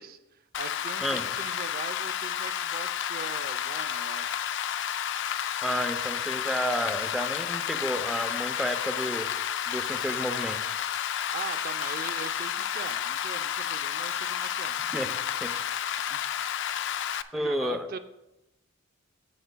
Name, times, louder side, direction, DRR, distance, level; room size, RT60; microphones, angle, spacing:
voice 1, 0.0-4.5 11.3-14.7 16.1-16.3 17.0-18.0, right 5 dB, 45° right, 9 dB, 0.5 m, -41 dB
Rain, 0.5-17.2, left 9 dB, 60° left, 0.4 m, -31 dB
voice 2, 5.6-9.3 9.7-10.7 14.9-15.1 15.4-16.0 17.3-18.0, equal, ahead, 7 dB, 0.5 m, -31 dB
14.5 x 7.4 x 2.2 m, 0.93 s
head